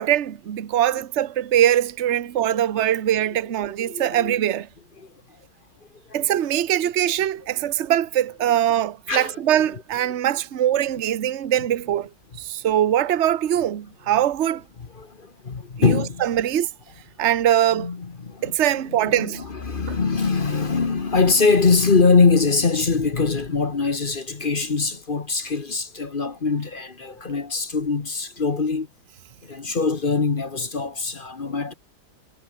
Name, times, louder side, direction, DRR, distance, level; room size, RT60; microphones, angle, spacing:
voice 1, 0.0-4.7 6.1-12.1 12.4-14.6 15.8-16.7 17.2-17.9 18.4-19.4 19.9-20.0, right 11 dB, 50° right, 0.9 m, -22 dB
voice 2, 3.8-4.3 9.1-9.3 14.9-16.2 17.7-18.5 19.0-28.9 29.4-31.7, left 4 dB, 30° left, 1.1 m, -22 dB
omnidirectional pair, 2.3 m